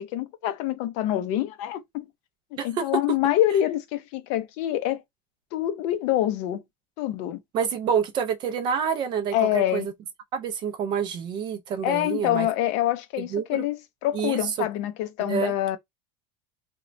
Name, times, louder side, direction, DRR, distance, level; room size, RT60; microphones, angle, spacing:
voice 1, 0.0-2.1 2.6-5.0 5.5-6.6 7.0-7.4 9.3-9.9 11.8-15.8, left 13 dB, 45° left, 0.4 m, -26 dB
voice 2, 7.5-9.9 10.3-12.5 13.2-13.6 14.1-14.7 15.2-15.5, right 7 dB, 25° right, 0.3 m, -28 dB
2.9 x 2.1 x 2.5 m
cardioid pair, 170°, 17 cm